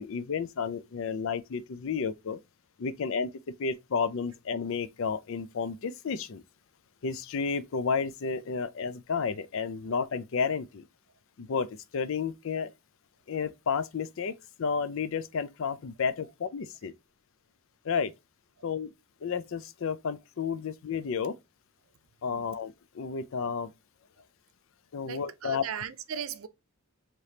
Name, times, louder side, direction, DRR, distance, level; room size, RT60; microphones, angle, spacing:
voice 1, 0.0-2.4 2.8-3.3 3.6-6.4 7.0-10.9 11.4-12.7 13.3-16.9 17.8-18.1 18.6-18.9 19.2-21.4 22.2-23.7 24.9-25.6, left 5 dB, 65° left, 0.4 m, -31 dB
voice 2, 25.0-26.5, right 7 dB, 70° right, 0.5 m, -37 dB
4.9 x 3.0 x 2.8 m
head